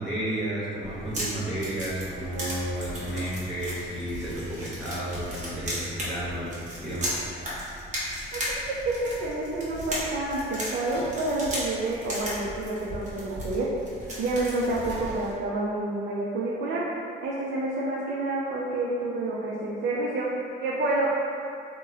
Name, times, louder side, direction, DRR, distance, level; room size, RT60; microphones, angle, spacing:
voice 1, 0.0-6.5 6.8-7.2, right 1 dB, ahead, -11 dB, 1.0 m, -32 dB
sound 1, 0.8-15.3, equal, 35° right, 1.0 m, -36 dB
voice 2, 8.9-13.7 14.2-16.8 17.2-20.3 20.6-21.1, right 2 dB, 60° right, -6 dB, 0.5 m, -28 dB
3.0 x 2.1 x 3.4 m, 2.4 s
cardioid pair, 90°, 20 cm